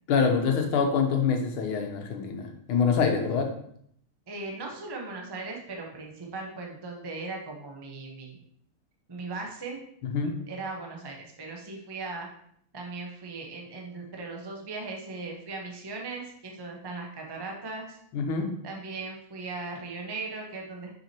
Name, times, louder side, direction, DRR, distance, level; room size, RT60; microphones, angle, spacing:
voice 1, 0.1-3.5 10.0-10.3 18.1-18.5, left 5 dB, 85° left, 3 dB, 1.8 m, -25 dB
voice 2, 4.3-8.4 9.1-9.8 10.2-12.3 12.7-18.0 18.6-20.9, right 3 dB, 25° right, 1 dB, 0.5 m, -38 dB
6.2 x 6.1 x 2.9 m, 0.67 s
omnidirectional pair, 2.3 m